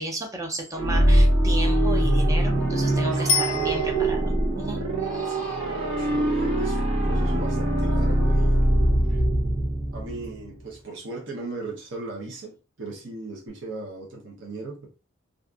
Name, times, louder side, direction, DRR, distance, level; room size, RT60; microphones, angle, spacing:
voice 1, 0.0-5.6, right 1 dB, 15° right, 0.4 m, -34 dB
sound 1, 0.7-10.5, right 1 dB, 85° right, 1.1 m, -22 dB
voice 2, 3.0-3.5 5.2-9.2 9.9-14.9, right 2 dB, 60° right, 0.8 m, -38 dB
Bicycle bell, 3.3-4.4 13.5-13.6, left 5 dB, 85° left, 0.4 m, -27 dB
2.6 x 2.5 x 2.3 m
head